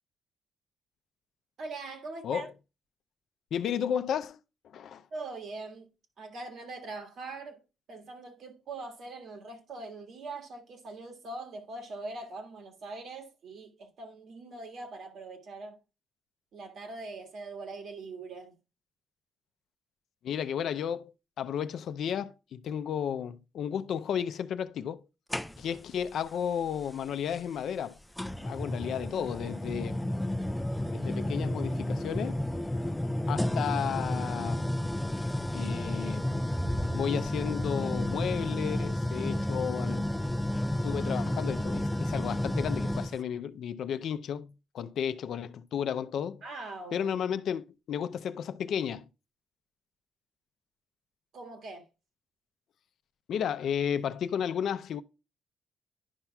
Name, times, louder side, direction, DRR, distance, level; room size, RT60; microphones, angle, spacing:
voice 1, 1.6-2.5 5.1-5.9 6.2-7.6 7.9-15.8 16.5-18.5 46.4-47.1 51.3-51.9, right 3 dB, 60° right, 1.7 m, -42 dB
voice 2, 3.5-4.4 4.7-5.0 20.2-21.1 21.4-25.0 25.6-28.0 28.4-30.0 30.9-32.4 33.3-34.6 35.5-36.2 36.9-40.1 40.8-46.4 46.9-49.1 53.3-55.0, left 8 dB, 65° left, 0.4 m, -33 dB
sound 1, 25.3-25.9 27.3-27.4 28.2-43.2, left 1 dB, 5° left, 0.3 m, -31 dB
10.5 x 5.8 x 2.3 m
cardioid pair, 150°, 0 cm